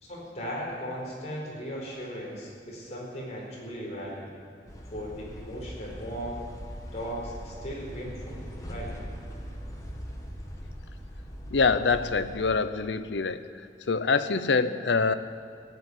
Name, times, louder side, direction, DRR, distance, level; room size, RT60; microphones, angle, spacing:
voice 1, 0.0-4.3 4.9-6.4 6.9-8.9, equal, 40° left, -4 dB, 4.5 m, -37 dB
sound 1, 4.7-12.5, equal, 20° left, 1.5 m, -41 dB
voice 2, 11.5-13.5 13.9-15.1, left 4 dB, 90° left, 12 dB, 0.7 m, -25 dB
16.0 x 8.3 x 9.8 m, 2.2 s
head